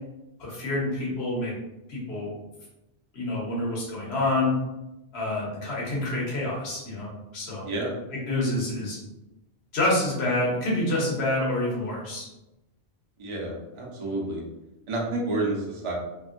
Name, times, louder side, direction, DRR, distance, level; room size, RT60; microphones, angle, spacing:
voice 1, 0.4-1.5 1.9-2.3 3.1-4.5 5.1-7.7 8.3-9.0 9.7-12.3, left 1 dB, 65° left, -5 dB, 1.3 m, -27 dB
voice 2, 7.6-8.0 13.2-14.4 14.9-15.9, right 2 dB, 35° right, -2 dB, 0.5 m, -29 dB
2.9 x 2.6 x 2.5 m, 0.95 s
omnidirectional pair, 1.2 m